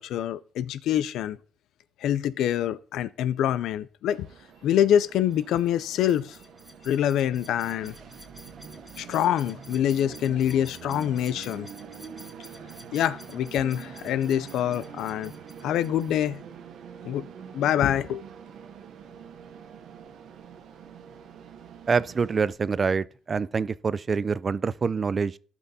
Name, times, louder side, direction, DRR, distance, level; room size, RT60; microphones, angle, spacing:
voice 1, 0.0-1.4 2.0-4.3 4.6-6.4 6.8-7.9 9.0-11.7 12.9-15.3 15.6-16.4 17.0-17.3 17.5-18.2, left 10 dB, 80° left, 0.4 m, -25 dB
Train, 4.1-22.5, right 7 dB, 75° right, 0.7 m, -45 dB
sound 1, 5.3-16.4, left 1 dB, 5° left, 2.2 m, -51 dB
voice 2, 21.9-25.4, right 5 dB, 40° right, 0.3 m, -26 dB
15.0 x 6.0 x 2.7 m
cardioid pair, 90°, 0 cm